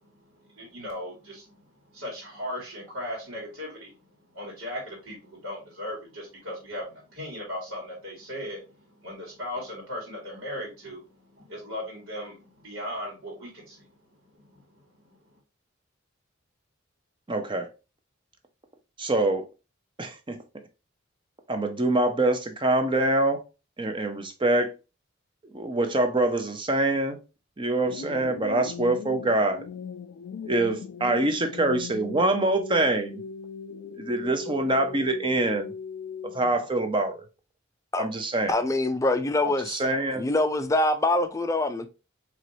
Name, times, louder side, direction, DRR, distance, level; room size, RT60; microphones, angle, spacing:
voice 1, 0.0-13.9 14.3-15.4, left 1 dB, 80° right, 2.0 m, -38 dB
voice 2, 17.3-17.7 19.0-19.4 20.0-20.4 21.5-23.4 23.8-24.7 25.5-27.2 27.6-29.6 30.4-33.2 34.0-35.7 36.3-37.2 38.0-38.5 39.7-40.2, right 2 dB, 25° right, 0.6 m, -25 dB
sound 1, 27.8-36.8, left 5 dB, 80° left, 0.3 m, -39 dB
voice 3, 38.5-39.8 40.2-41.9, left 2 dB, 15° left, 0.4 m, -24 dB
4.5 x 3.0 x 2.7 m
head